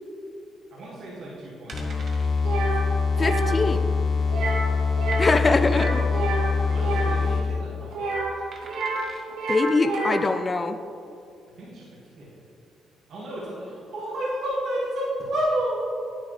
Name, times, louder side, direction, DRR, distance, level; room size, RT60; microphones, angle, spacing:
voice 1, 0.7-1.9 4.4-4.5 5.5-8.1 11.6-12.4 13.1-15.8, right 1 dB, 70° right, -7 dB, 2.2 m, -32 dB
sound 1, 1.7-7.6, left 5 dB, 50° left, 1.1 m, -24 dB
sound 2, 1.7-2.4 2.8-2.9 3.2-3.3 3.9-4.3 5.1-5.8 7.1-7.5 8.5-9.3 9.9-10.0, right 3 dB, 50° right, 1.3 m, -46 dB
sound 3, 2.4-2.8 3.1-3.5 4.3-4.7 4.9-5.3 5.6-7.1 7.9-9.0 9.3-10.3, right 3 dB, 85° right, 1.7 m, -29 dB
voice 2, 3.2-3.9 5.2-6.0 9.5-10.8, left 3 dB, 30° left, 10 dB, 0.5 m, -23 dB
9.8 x 9.4 x 3.4 m, 2.6 s
cardioid pair, 90°, 0 cm